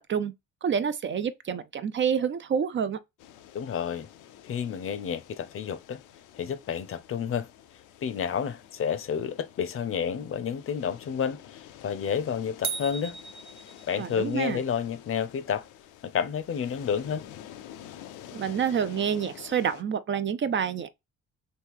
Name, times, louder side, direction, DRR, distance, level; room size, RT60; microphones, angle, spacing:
voice 1, 0.6-3.0 14.0-14.6 18.3-20.9, right 7 dB, 40° right, 0.4 m, -28 dB
sound 1, 3.2-19.8, left 11 dB, 90° left, 0.5 m, -49 dB
voice 2, 3.5-4.1 4.4-6.0 6.3-7.5 8.0-13.2 13.9-15.7 16.0-17.2, left 7 dB, 45° left, 0.6 m, -30 dB
sound 2, 12.6-14.2, right 6 dB, 70° right, 0.7 m, -36 dB
3.1 x 2.7 x 3.4 m
cardioid pair, 90°, 30 cm